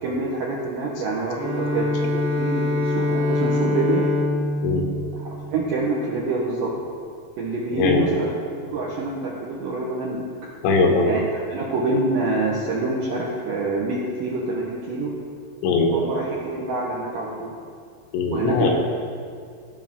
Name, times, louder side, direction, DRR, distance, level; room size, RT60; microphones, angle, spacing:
voice 1, 0.0-4.1 5.3-6.8 7.4-8.3 8.6-10.2 11.1-15.2 15.9-17.6 18.3-18.7, right 3 dB, 80° right, -4 dB, 1.9 m, -26 dB
Bowed string instrument, 1.2-6.2, left 2 dB, 65° right, 1.4 m, -25 dB
voice 2, 7.7-8.2 10.6-11.2 15.6-16.0 18.1-18.7, left 3 dB, 90° left, 1 dB, 3.4 m, -20 dB
15.5 x 5.7 x 3.7 m, 2.2 s
omnidirectional pair, 5.1 m